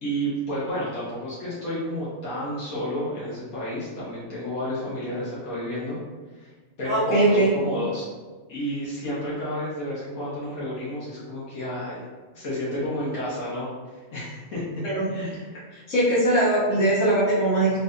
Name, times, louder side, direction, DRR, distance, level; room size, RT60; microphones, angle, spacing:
voice 1, 0.0-6.0 6.4-6.5 6.8-8.1 8.5-12.0 12.3-14.8 15.1-15.4, equal, 80° left, -8 dB, 1.8 m, -31 dB
voice 2, 6.9-7.5 14.8-15.1 15.7-17.8, right 1 dB, 65° left, -8 dB, 1.8 m, -21 dB
4.7 x 2.7 x 3.8 m, 1.3 s
omnidirectional pair, 1.5 m